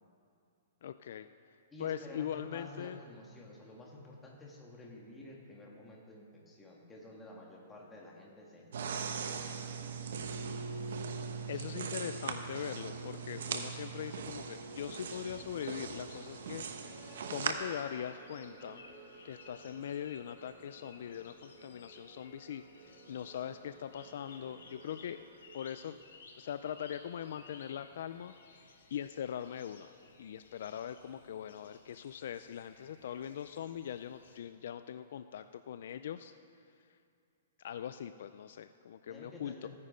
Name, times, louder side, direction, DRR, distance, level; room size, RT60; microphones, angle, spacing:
voice 1, 0.8-1.3 1.8-3.0 11.5-16.7 17.3-18.8 19.2-25.2 25.5-26.0 26.4-28.4 28.9-29.9 30.2-36.3 37.6-39.7, left 9 dB, 60° left, 11 dB, 0.4 m, -41 dB
voice 2, 1.7-8.6 9.9-10.6 11.5-11.6 39.1-39.7, left 1 dB, 10° left, -3 dB, 1.7 m, -51 dB
sound 1, 8.7-17.5, right 6 dB, 70° right, 1.0 m, -40 dB
sound 2, 15.0-34.4, left 4 dB, 85° left, 1.8 m, -59 dB
sound 3, 16.2-26.4, right 3 dB, 25° right, 2.4 m, -56 dB
15.0 x 9.5 x 5.1 m, 2.4 s
hypercardioid pair, 165°, 0 cm